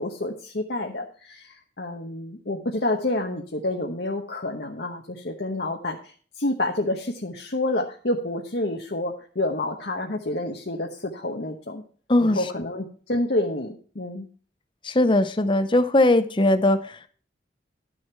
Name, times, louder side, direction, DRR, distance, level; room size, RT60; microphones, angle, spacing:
voice 1, 0.0-6.0 6.4-11.8 12.2-14.3, left 1 dB, 60° left, 1 dB, 1.1 m, -28 dB
voice 2, 12.1-12.4 14.8-17.1, left 1 dB, 25° left, 10 dB, 0.7 m, -20 dB
11.5 x 6.4 x 4.5 m, 0.43 s
head